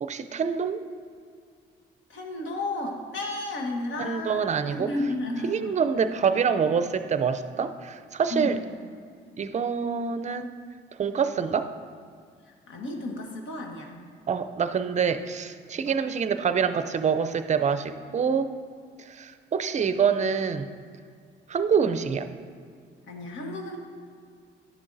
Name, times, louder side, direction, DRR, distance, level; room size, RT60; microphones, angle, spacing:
voice 1, 0.0-0.8 4.0-4.9 5.4-8.6 9.4-10.5 11.0-11.7 14.3-18.5 19.1-20.7 21.5-22.3, right 6 dB, 35° right, 10 dB, 0.5 m, -26 dB
voice 2, 2.1-4.4 4.7-5.8 8.3-8.6 12.7-13.9 15.8-16.0 23.1-23.8, left 2 dB, 75° left, 1 dB, 1.3 m, -32 dB
11.0 x 6.9 x 2.6 m, 2.1 s
cardioid pair, 90°, 20 cm